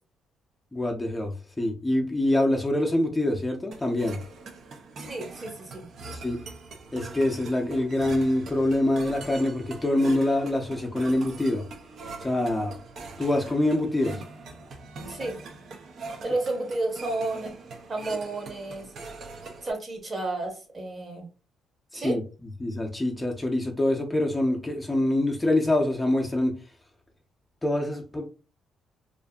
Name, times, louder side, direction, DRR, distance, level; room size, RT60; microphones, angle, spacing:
voice 1, 0.7-4.2 6.1-6.4 6.9-11.6 12.2-12.7 13.2-14.2 21.9-22.2 22.6-26.5 27.6-28.3, left 1 dB, 15° left, 0.5 m, -25 dB
sound 1, 3.7-19.7, right 3 dB, 60° right, 0.5 m, -42 dB
voice 2, 5.0-5.8 15.1-15.4 16.2-17.5 17.9-18.9 19.6-21.3 21.9-22.2, right 2 dB, 35° right, 0.9 m, -31 dB
2.5 x 2.5 x 2.3 m
cardioid pair, 90°, 0 cm